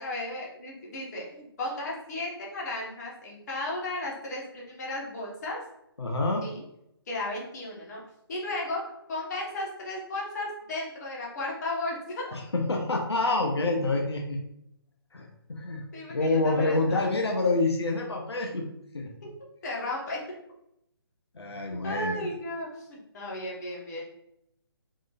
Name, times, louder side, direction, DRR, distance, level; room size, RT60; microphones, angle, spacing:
voice 1, 0.0-5.6 6.4-6.6 7.1-8.0 8.3-8.8 9.1-12.4 15.9-17.1 19.6-20.2 21.8-24.0, left 2 dB, 40° left, -3 dB, 1.3 m, -34 dB
voice 2, 6.0-6.5 12.3-14.4 15.1-18.7 18.9-19.1 21.3-22.3, left 2 dB, 80° left, 1 dB, 0.6 m, -27 dB
3.7 x 3.1 x 2.5 m, 0.78 s
figure-of-eight pair, 145°, 13 cm